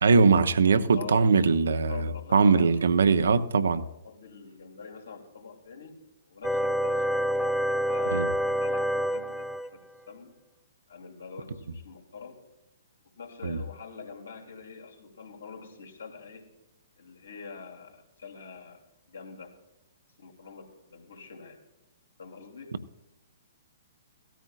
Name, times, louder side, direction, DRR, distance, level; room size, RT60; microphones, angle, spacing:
voice 1, 0.0-3.8 8.1-8.3 13.4-13.6, right 4 dB, 70° right, 0.7 m, -21 dB
voice 2, 0.9-1.3 1.6-2.8 3.7-6.0 6.3-10.4 10.9-12.4 13.2-16.5 17.0-18.8 19.1-19.6 20.2-21.6 22.2-22.8, left 5 dB, 75° left, 2.8 m, -45 dB
sound 1, 6.4-9.7, equal, ahead, 0.5 m, -27 dB
16.5 x 13.5 x 2.4 m
figure-of-eight pair, 120°, 0 cm